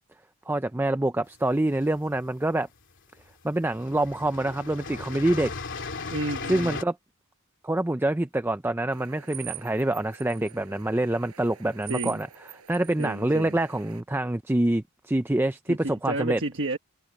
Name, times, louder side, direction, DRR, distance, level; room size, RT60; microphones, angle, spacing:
voice 1, 0.5-2.7 3.4-5.5 6.5-7.0 7.6-12.3 12.7-16.4, right 1 dB, 10° right, 0.5 m, -26 dB
sound 1, 1.5-2.3 3.2-3.3 3.6-6.8, left 4 dB, 55° left, 3.0 m, -36 dB
voice 2, 6.1-6.8 11.9-12.2 13.0-13.6 15.7-16.8, right 2 dB, 55° right, 1.4 m, -31 dB
sound 2, 8.9-14.0, right 13 dB, 85° right, 6.0 m, -44 dB
head